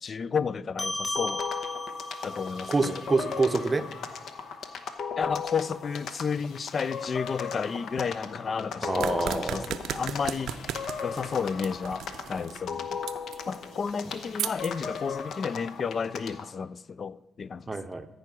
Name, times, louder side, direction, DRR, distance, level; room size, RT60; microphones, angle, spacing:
voice 1, 0.0-1.5 2.2-3.0 5.2-10.6 11.0-13.0 13.5-17.7, left 6 dB, 45° left, 0.3 m, -32 dB
sound 1, 0.8-5.6, left 1 dB, 30° left, 0.7 m, -37 dB
sound 2, 1.2-16.5, left 6 dB, 70° left, 0.8 m, -37 dB
voice 2, 2.7-3.8 8.9-9.7 17.7-18.1, right 3 dB, 25° right, 0.7 m, -26 dB
sound 3, 9.0-15.2, right 10 dB, 80° right, 0.5 m, -38 dB
14.0 x 4.9 x 6.0 m
cardioid pair, 90°, 0 cm